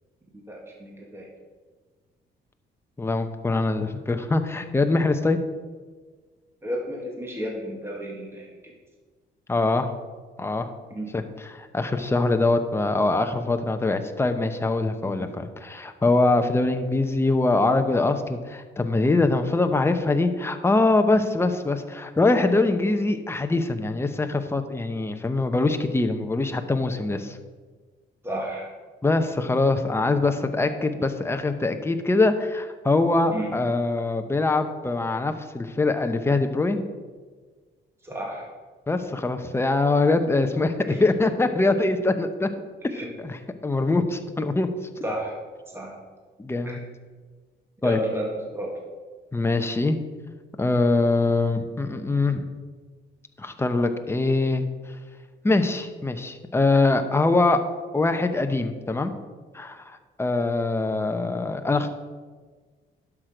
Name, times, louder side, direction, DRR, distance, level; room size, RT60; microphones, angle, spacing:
voice 1, 0.3-1.3 6.6-8.5 10.9-11.1 15.0-15.3 28.2-28.7 33.3-33.5 38.0-38.5 42.9-43.1 45.0-45.4 45.7-45.9 46.7-46.8 47.8-48.3 48.5-48.7, right 1 dB, 10° right, -1 dB, 2.0 m, -32 dB
voice 2, 3.0-5.4 9.5-9.9 10.4-10.7 11.1-27.4 29.0-36.8 38.9-40.7 41.0-42.5 42.8-42.9 43.2-44.7 46.4-46.8 47.8-48.0 49.3-50.0 50.6-52.4 53.4-54.7 55.4-57.6 57.9-59.1 59.5-61.9, left 2 dB, 10° left, 7 dB, 0.8 m, -23 dB
11.5 x 6.1 x 5.0 m, 1.4 s
cardioid pair, 90°, 20 cm